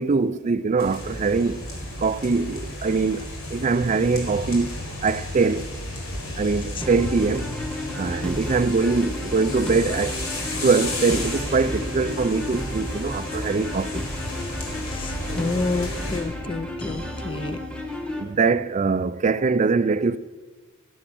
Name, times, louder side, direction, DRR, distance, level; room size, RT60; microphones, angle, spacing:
voice 1, 0.0-1.7 2.0-4.7 5.0-5.7 6.4-7.5 7.9-10.2 10.6-14.0 16.9-20.2, right 4 dB, 35° right, 0.4 m, -23 dB
sound 1, 0.8-16.2, left 1 dB, 85° left, 4.3 m, -33 dB
sound 2, 6.8-18.2, left 1 dB, 5° left, 1.5 m, -33 dB
sound 3, 12.2-18.6, equal, 60° left, 3.6 m, -49 dB
voice 2, 14.8-17.6, left 3 dB, 25° left, 0.5 m, -29 dB
17.0 x 11.0 x 6.1 m
head